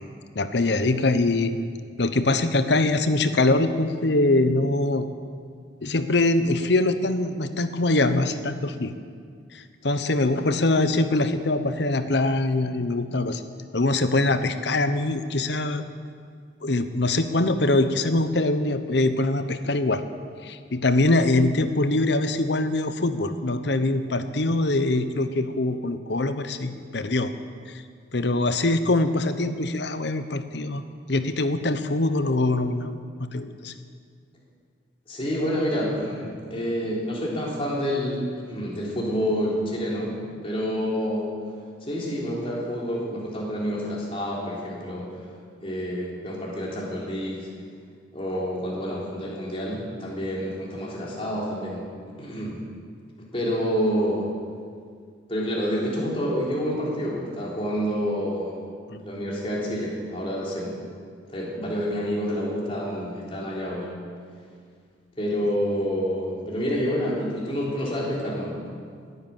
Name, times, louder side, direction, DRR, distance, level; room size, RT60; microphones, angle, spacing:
voice 1, 0.4-1.5 2.0-5.1 5.8-8.9 9.5-13.4 13.7-15.8 16.6-20.0 20.4-27.3 27.7-27.8 28.1-30.8 31.1-33.0 33.3-33.7 58.9-59.0, left 2 dB, 65° left, 10 dB, 0.9 m, -23 dB
voice 2, 35.1-40.2 40.4-41.3 41.8-45.1 45.6-47.5 48.1-51.9 52.2-52.6 53.2-54.3 55.3-58.6 59.0-60.7 61.3-63.9 65.2-68.6, equal, 30° left, -5 dB, 3.7 m, -28 dB
19.5 x 9.7 x 7.4 m, 2.1 s
head